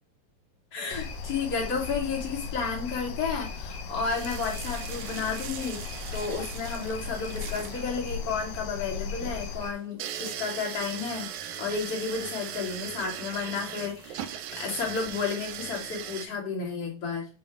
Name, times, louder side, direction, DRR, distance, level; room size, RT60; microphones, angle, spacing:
voice 1, 0.7-5.8 6.1-11.3 11.6-14.3 14.5-17.3, left 5 dB, 50° left, -4 dB, 3.1 m, -32 dB
sound 1, 0.9-9.7, left 5 dB, 90° left, 2.6 m, -37 dB
sound 2, 4.0-16.3, right 9 dB, 85° right, 2.1 m, -39 dB
7.6 x 2.8 x 4.6 m, 0.32 s
omnidirectional pair, 3.5 m